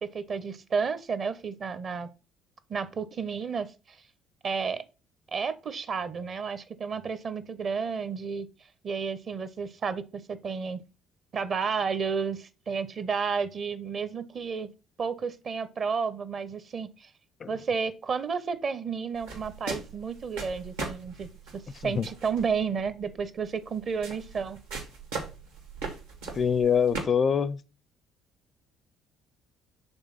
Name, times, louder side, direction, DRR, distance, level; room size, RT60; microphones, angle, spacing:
voice 1, 0.0-2.1 2.7-4.0 4.4-4.8 5.3-8.5 8.8-10.8 11.3-14.7 15.0-17.1 17.5-24.6, right 5 dB, 45° right, 0.7 m, -32 dB
sound 1, 19.1-27.0, right 3 dB, 80° right, 1.6 m, -40 dB
voice 2, 26.3-27.6, left 7 dB, 40° left, 0.4 m, -24 dB
5.4 x 3.6 x 5.7 m
hypercardioid pair, 50°, 0 cm